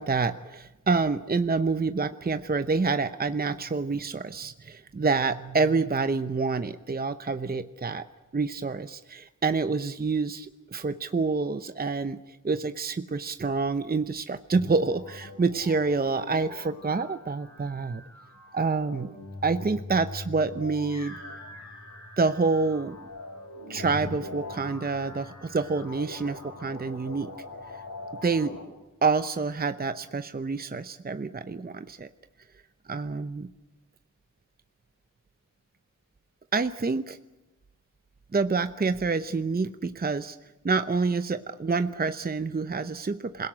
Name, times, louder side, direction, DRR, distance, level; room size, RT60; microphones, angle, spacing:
voice 1, 0.0-8.1 8.3-12.2 12.4-18.0 18.5-19.2 19.4-21.2 22.2-23.0 23.7-27.3 28.2-28.5 29.0-32.1 32.9-33.5 36.5-37.2 38.3-40.4 40.6-43.5, right 4 dB, 30° right, 10 dB, 0.8 m, -27 dB
sound 1, 14.5-28.6, left 2 dB, 65° left, 6.9 m, -42 dB
27.0 x 17.5 x 10.0 m, 1.0 s
wide cardioid pair, 75°, 33 cm